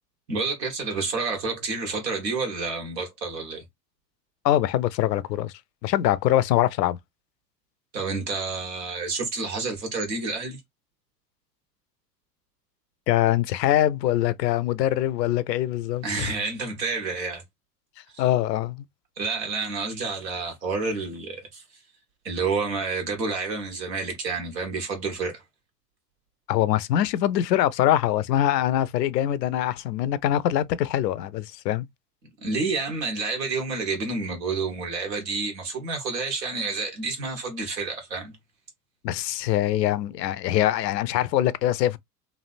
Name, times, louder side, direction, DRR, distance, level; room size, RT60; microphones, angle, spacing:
voice 1, 0.3-3.6 7.9-10.6 16.0-17.4 18.1-18.2 19.2-21.6 22.2-25.4 32.4-38.3, right 4 dB, 80° right, 1.5 m, -29 dB
voice 2, 4.4-5.5 5.8-7.0 13.1-16.3 18.2-18.8 26.5-31.9 39.0-42.0, left 12 dB, 85° left, 0.5 m, -23 dB
3.2 x 2.5 x 2.4 m
hypercardioid pair, 85°, 49 cm